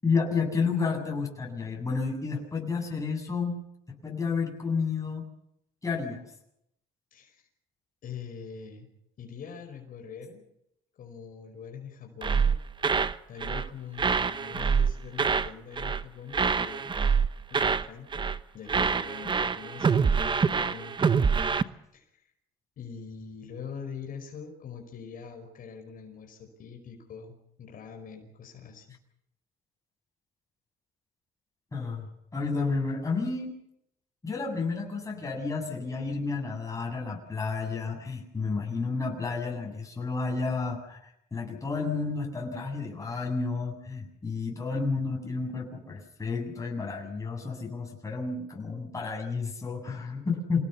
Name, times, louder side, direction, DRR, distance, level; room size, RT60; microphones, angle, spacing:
voice 1, 0.0-3.6 3.9-5.3 5.8-6.3 31.7-32.1 32.3-33.5 34.2-41.0 41.3-50.7, left 4 dB, 20° left, 0 dB, 8.0 m, -31 dB
voice 2, 7.1-7.5 8.0-8.9 9.2-10.4 10.9-12.6 13.3-17.2 17.5-21.3 21.9-22.3 22.8-29.0, left 6 dB, 55° left, 3 dB, 5.3 m, -44 dB
sound 1, 12.2-13.2 13.4-13.7 14.0-15.5 15.8-16.1 16.3-17.9 18.1-18.4 18.7-21.6, right 5 dB, 30° right, 1.1 m, -26 dB
28.0 x 18.5 x 7.1 m, 0.78 s
cardioid pair, 110°, 17 cm